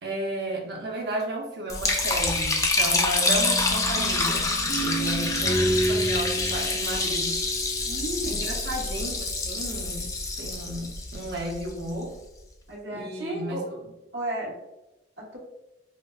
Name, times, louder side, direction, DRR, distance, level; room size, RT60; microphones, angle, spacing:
voice 1, 0.0-7.4 8.2-10.1 10.4-12.1 12.9-13.6, right 1 dB, 60° right, -1 dB, 0.6 m, -33 dB
Liquid, 1.7-11.9, left 3 dB, 20° left, 0.3 m, -27 dB
sound 1, 3.2-8.1, right 1 dB, 70° left, 1.5 m, -30 dB
voice 2, 7.8-8.4 12.7-13.6 14.1-14.6 15.2-15.4, right 1 dB, 80° right, -4 dB, 1.1 m, -33 dB
4.8 x 2.1 x 2.3 m, 0.95 s
head